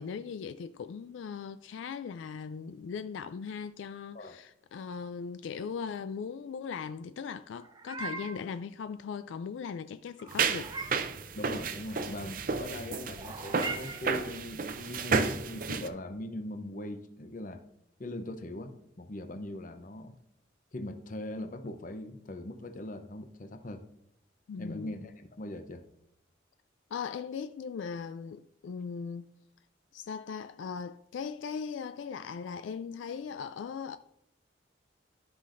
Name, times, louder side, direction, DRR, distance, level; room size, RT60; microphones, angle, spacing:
voice 1, 0.0-10.7 24.5-24.9 26.9-29.3 29.9-34.0, left 6 dB, 75° left, 0.3 m, -39 dB
Meow, 7.5-8.5 10.2-11.1 13.2-14.3, right 3 dB, 25° right, 0.8 m, -40 dB
sound 1, 10.3-15.9, right 5 dB, 45° right, 0.6 m, -32 dB
voice 2, 11.3-17.6 18.0-20.2 20.7-23.8 24.6-25.8, left 1 dB, 45° left, 0.7 m, -40 dB
13.5 x 5.7 x 2.6 m
head